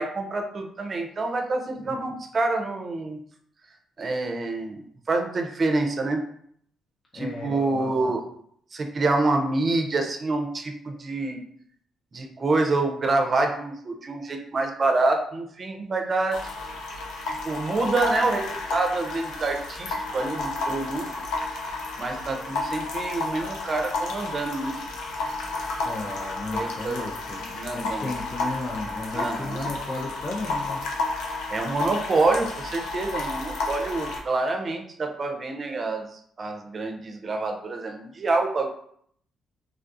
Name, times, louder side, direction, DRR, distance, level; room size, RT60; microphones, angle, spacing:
voice 1, 0.0-3.2 4.0-4.8 5.1-6.2 7.1-8.2 8.7-11.4 12.1-16.5 17.4-21.1 22.0-24.8 26.5-27.0 27.5-28.0 29.1-29.7 31.5-38.7, right 3 dB, 40° right, 4 dB, 0.5 m, -27 dB
voice 2, 7.1-8.1 25.8-30.8, left 2 dB, 35° left, -3 dB, 0.4 m, -35 dB
sound 1, 16.3-34.2, left 2 dB, 90° left, 0.5 m, -32 dB
3.3 x 2.3 x 2.6 m, 0.65 s
cardioid pair, 90°, 0 cm